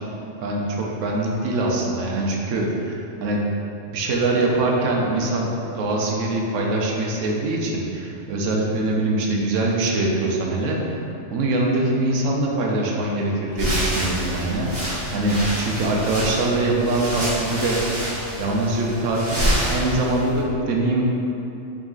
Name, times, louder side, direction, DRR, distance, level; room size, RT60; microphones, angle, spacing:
voice 1, 0.4-3.4 3.9-10.8 11.3-17.8 18.4-21.0, right 2 dB, 85° right, -1 dB, 0.9 m, -23 dB
sound 1, 13.5-20.4, equal, 30° right, 1.4 m, -27 dB
3.8 x 3.7 x 2.4 m, 2.8 s
omnidirectional pair, 1.3 m